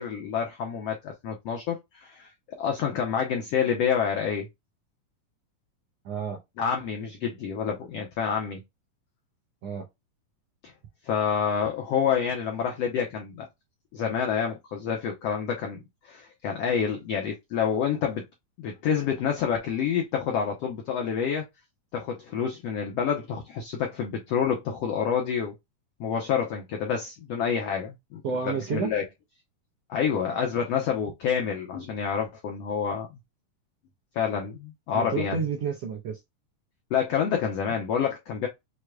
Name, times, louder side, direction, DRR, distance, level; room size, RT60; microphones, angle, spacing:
voice 1, 0.0-2.3 2.6-4.5 6.6-8.6 11.0-13.5 13.9-18.2 18.6-21.5 21.9-25.5 26.0-28.2 28.5-29.0 29.9-33.1 34.1-35.4 36.9-38.5, left 7 dB, 85° left, 1.4 m, -28 dB
voice 2, 6.0-6.4 9.6-9.8 28.2-28.9 34.9-36.2, right 5 dB, 75° right, 1.5 m, -30 dB
6.4 x 3.2 x 2.2 m
omnidirectional pair, 3.9 m